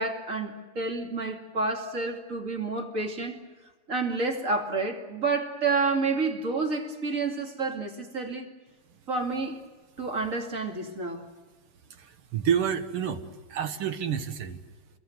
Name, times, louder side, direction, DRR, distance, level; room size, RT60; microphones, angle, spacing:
voice 1, 0.0-3.4 3.9-8.5 9.1-9.6 10.0-11.3, right 3 dB, 40° right, 2.8 m, -29 dB
voice 2, 11.9-13.2 13.5-14.6, right 8 dB, 80° right, 2.4 m, -29 dB
27.5 x 22.0 x 7.9 m
omnidirectional pair, 2.4 m